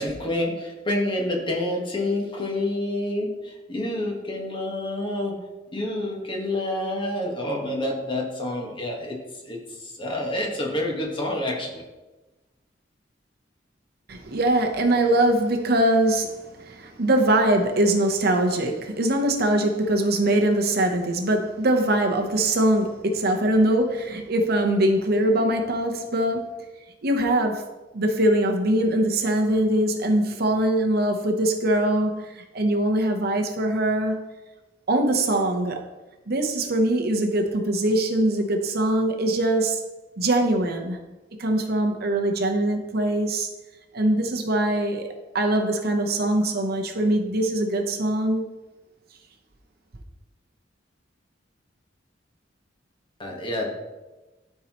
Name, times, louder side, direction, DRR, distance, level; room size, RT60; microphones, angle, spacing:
voice 1, 0.0-5.4 5.7-9.2 9.4-11.8 53.2-53.7, left 1 dB, 25° left, -1 dB, 1.4 m, -28 dB
voice 2, 14.1-26.6 27.0-27.7 27.9-34.2 34.9-35.8 36.3-39.8 40.2-41.0 41.4-43.5 43.9-45.1 45.3-48.5, right 1 dB, 55° right, 4 dB, 0.8 m, -22 dB
12.5 x 4.6 x 3.0 m, 1.1 s
head